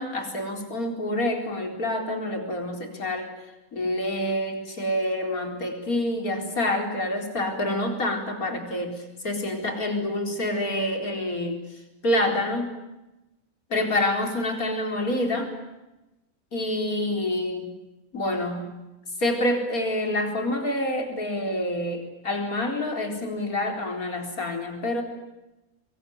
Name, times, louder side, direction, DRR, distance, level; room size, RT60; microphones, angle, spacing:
voice 1, 0.0-3.3 3.7-11.6 12.0-12.7 13.7-15.6 16.5-17.7 18.1-18.8 19.2-25.0, left 1 dB, 85° left, 4 dB, 4.8 m, -27 dB
24.5 x 23.0 x 9.4 m, 1.0 s
omnidirectional pair, 1.5 m